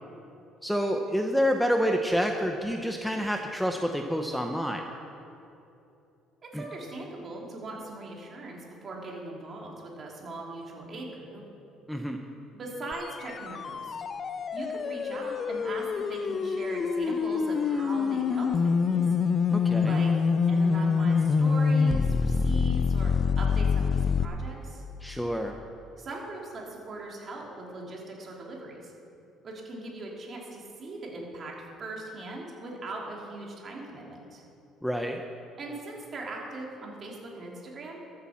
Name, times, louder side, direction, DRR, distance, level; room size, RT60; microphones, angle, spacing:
voice 1, 0.6-4.8 6.5-6.6 11.9-12.2 19.5-20.0 25.0-25.5 34.8-35.2, equal, ahead, 4 dB, 0.7 m, -28 dB
voice 2, 6.5-11.4 12.5-14.0 14.5-19.0 19.8-20.1 20.5-24.8 26.0-28.9 29.4-34.4 35.6-38.0, right 2 dB, 40° right, -2 dB, 3.1 m, -40 dB
sound 1, 12.9-24.2, left 5 dB, 35° left, 0.5 m, -26 dB
13.5 x 8.7 x 7.3 m, 2.8 s
cardioid pair, 120°, 0 cm